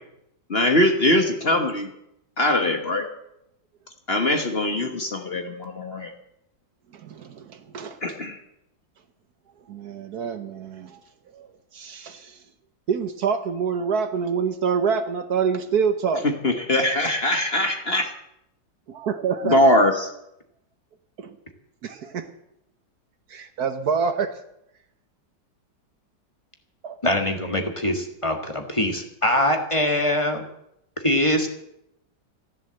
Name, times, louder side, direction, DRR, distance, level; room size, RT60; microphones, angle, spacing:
voice 1, 0.5-1.9 2.4-3.1 4.1-6.1 8.0-8.4 16.4-18.1 19.4-20.1, left 1 dB, 35° left, 5 dB, 1.4 m, -21 dB
voice 2, 6.9-8.0 9.7-11.0 11.3-12.4 12.9-16.3 18.9-19.6 21.2-21.4 21.8-22.3 23.3-24.3 26.8-27.0, right 6 dB, 60° right, 9 dB, 1.4 m, -26 dB
voice 3, 27.0-30.5 31.0-31.5, left 1 dB, 15° left, 4 dB, 1.7 m, -23 dB
14.5 x 11.0 x 7.8 m, 0.80 s
omnidirectional pair, 2.0 m